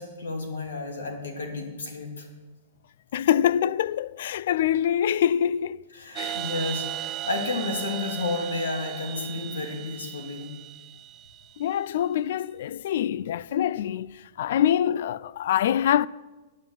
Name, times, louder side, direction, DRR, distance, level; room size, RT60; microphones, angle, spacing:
voice 1, 0.0-2.3 5.9-10.5, left 3 dB, 85° left, 2.7 m, -32 dB
voice 2, 3.1-5.8 6.2-6.4 11.6-16.1, left 10 dB, 65° left, 0.3 m, -25 dB
sound 1, 6.1-11.7, right 12 dB, 25° right, 0.9 m, -36 dB
9.4 x 9.2 x 7.8 m
hypercardioid pair, 130°, 0 cm